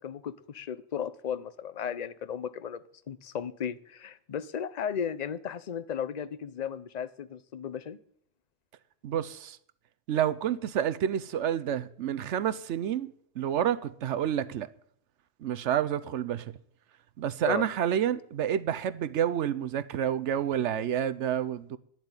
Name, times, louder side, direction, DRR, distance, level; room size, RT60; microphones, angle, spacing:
voice 1, 0.0-8.0 17.5-17.6, left 8 dB, 45° left, 0.6 m, -35 dB
voice 2, 9.0-9.6 10.1-14.7 15.4-16.5 17.2-21.8, right 10 dB, 65° right, 0.9 m, -29 dB
11.0 x 7.5 x 9.7 m
omnidirectional pair, 1.4 m